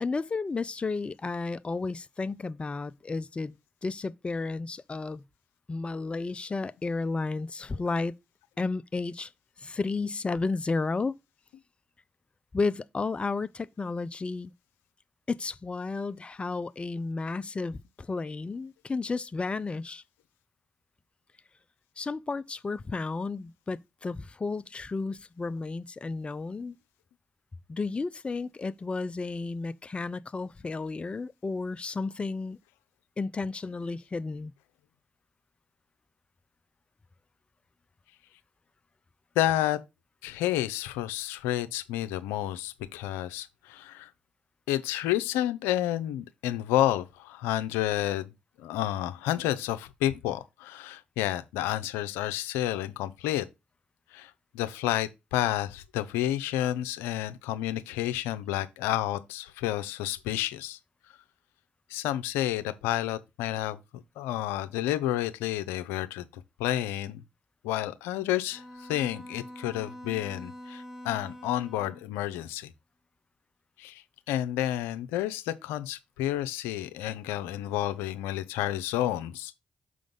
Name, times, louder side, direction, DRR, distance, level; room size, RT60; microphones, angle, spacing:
voice 1, 0.0-5.2 5.7-8.1 8.6-9.3 9.6-11.1 12.5-14.5 15.3-20.0 22.0-26.8 27.7-32.6 33.2-34.5, left 3 dB, 30° left, 0.5 m, -32 dB
voice 2, 39.4-39.8 40.2-44.1 44.7-48.3 48.6-53.4 54.1-60.8 61.9-67.2 67.6-72.7 73.8-79.5, left 13 dB, 90° left, 0.6 m, -30 dB
Bowed string instrument, 68.5-72.1, left 1 dB, 15° right, 3.4 m, -45 dB
6.2 x 3.8 x 5.2 m
supercardioid pair, 50°, 4 cm